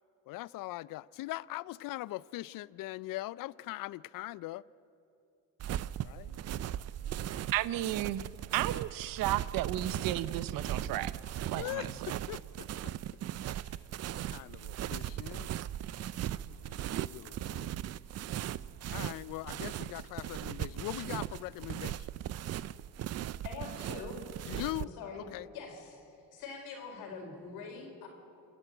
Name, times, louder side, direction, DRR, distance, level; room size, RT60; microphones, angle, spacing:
voice 1, 0.3-4.6 6.0-6.4 7.0-7.3 11.5-12.9 13.6-13.9 14.2-15.5 16.3-17.9 18.9-22.1 24.5-24.9 25.2-25.5, left 17 dB, 65° left, 0.5 m, -41 dB
sound 1, 5.6-24.8, right 11 dB, 45° right, 0.5 m, -38 dB
voice 2, 7.5-8.2 8.5-11.1 11.5-12.2, right 14 dB, 70° right, 0.9 m, -33 dB
voice 3, 23.4-24.2 24.8-25.3 25.5-26.0 26.3-28.1, left 5 dB, 85° left, 4.3 m, -44 dB
28.0 x 10.5 x 8.8 m
cardioid pair, 90°, 35 cm